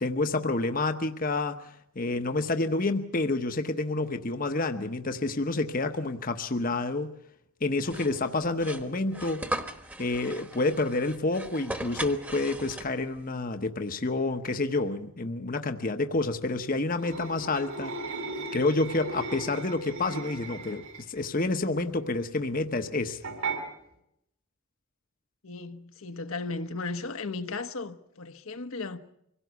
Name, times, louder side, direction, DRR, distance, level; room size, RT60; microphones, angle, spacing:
voice 1, 0.0-7.1 7.6-9.5 10.0-17.9 18.5-23.3, left 2 dB, 40° left, 1.0 m, -29 dB
sound 1, 7.8-13.2, right 1 dB, 10° right, 1.2 m, -38 dB
sound 2, 17.0-21.2 23.2-23.6, right 3 dB, 80° right, 4.7 m, -37 dB
voice 2, 25.4-29.0, left 3 dB, 75° left, 1.2 m, -35 dB
25.0 x 17.0 x 8.1 m
head